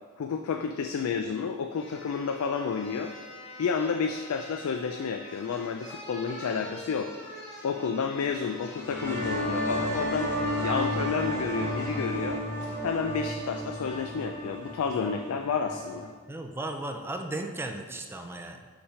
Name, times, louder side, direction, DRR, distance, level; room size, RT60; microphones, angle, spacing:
voice 1, 0.2-3.1 3.6-7.1 7.6-10.3 10.6-12.4 12.8-16.1, left 5 dB, 90° left, 4 dB, 0.4 m, -30 dB
sound 1, 1.3-1.4 1.8-12.1 12.6-12.8, left 1 dB, 60° left, 1.2 m, -45 dB
sound 2, 8.7-16.1, equal, 10° left, 1.0 m, -32 dB
voice 2, 16.3-18.7, right 2 dB, 10° right, 4 dB, 0.4 m, -35 dB
5.6 x 3.4 x 5.5 m, 1.5 s
head